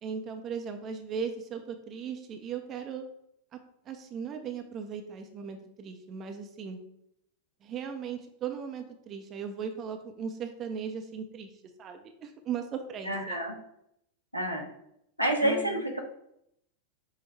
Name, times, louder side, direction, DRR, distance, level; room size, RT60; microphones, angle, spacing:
voice 1, 0.0-3.1 3.5-3.6 3.9-6.8 7.6-11.5 11.8-13.4 15.4-15.8, right 6 dB, 30° right, 5 dB, 0.5 m, -37 dB
voice 2, 13.0-13.5 14.3-14.7 15.2-16.0, right 1 dB, 90° right, 0 dB, 0.9 m, -28 dB
5.9 x 2.1 x 4.1 m, 0.76 s
figure-of-eight pair, 90°, 0 cm